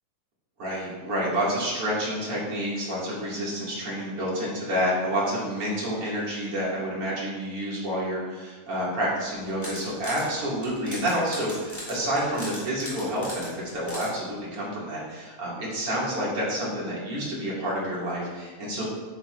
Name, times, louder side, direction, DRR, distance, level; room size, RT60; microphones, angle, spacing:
voice 1, 0.6-18.8, equal, 45° right, -7 dB, 3.0 m, -29 dB
sound 1, 9.3-10.3 10.6-14.1, equal, 5° left, 2.3 m, -38 dB
12.5 x 9.7 x 2.6 m, 1.4 s
omnidirectional pair, 3.9 m